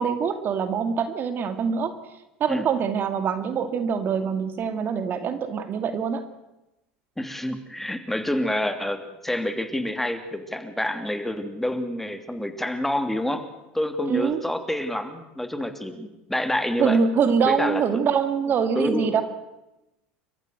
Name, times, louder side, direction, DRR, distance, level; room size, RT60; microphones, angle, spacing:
voice 1, 0.0-1.9 2.4-6.2 14.1-14.4 16.8-19.2, right 6 dB, 45° right, 9 dB, 2.3 m, -24 dB
voice 2, 7.2-13.5 13.7-17.0 17.4-17.8 18.7-19.2, left 1 dB, 5° left, 8 dB, 3.0 m, -28 dB
30.0 x 14.5 x 8.0 m, 0.96 s
hypercardioid pair, 80°, 5 cm